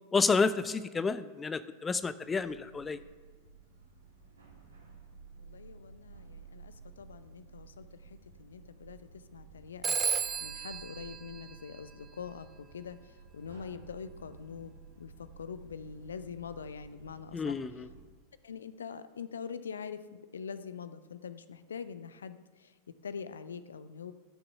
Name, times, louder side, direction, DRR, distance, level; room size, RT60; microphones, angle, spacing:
voice 1, 0.1-3.0 17.3-17.9, left 4 dB, 15° left, 14 dB, 0.4 m, -30 dB
sound 1, 2.2-18.0, right 5 dB, 75° right, 2.5 m, -54 dB
voice 2, 5.4-9.0 9.3-9.9 10.4-13.0 13.3-17.6 18.4-22.7 23.0-24.1, left 6 dB, 70° left, 13 dB, 0.6 m, -44 dB
Telephone, 9.8-12.3, right 7 dB, 20° right, 0.7 m, -34 dB
12.0 x 6.8 x 6.6 m, 1.4 s
figure-of-eight pair, 90°, 0 cm